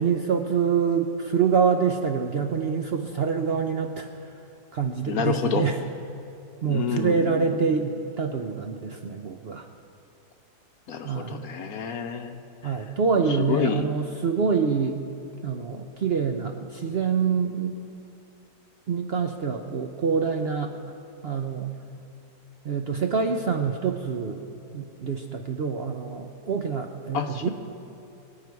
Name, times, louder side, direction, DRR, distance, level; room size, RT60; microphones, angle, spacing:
voice 1, 0.0-4.1 4.7-5.8 6.6-9.7 11.0-11.4 12.6-15.0 15.4-17.7 18.9-20.7 21.2-21.7 22.6-24.4 24.7-27.5, right 6 dB, 60° right, 4 dB, 0.7 m, -26 dB
voice 2, 5.1-5.7 6.7-7.7 10.9-12.4 12.6-12.8 13.3-13.9 14.6-14.7 27.1-27.5, left 7 dB, 65° left, 6 dB, 1.1 m, -29 dB
24.0 x 9.0 x 4.7 m, 2.8 s
omnidirectional pair, 1.8 m